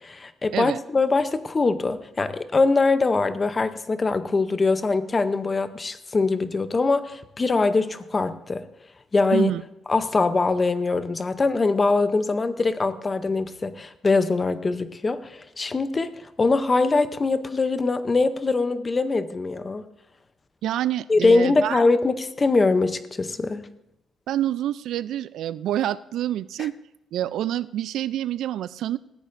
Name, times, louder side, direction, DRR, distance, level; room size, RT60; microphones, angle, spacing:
voice 1, 0.0-8.6 9.1-9.5 9.9-16.1 16.4-19.8 21.1-23.6 26.6-26.7, left 3 dB, 20° left, 11 dB, 0.6 m, -22 dB
voice 2, 20.6-21.8 24.3-26.7 27.1-29.0, right 12 dB, 80° right, 17 dB, 0.3 m, -27 dB
19.5 x 14.5 x 2.6 m, 0.87 s
cardioid pair, 170°, 0 cm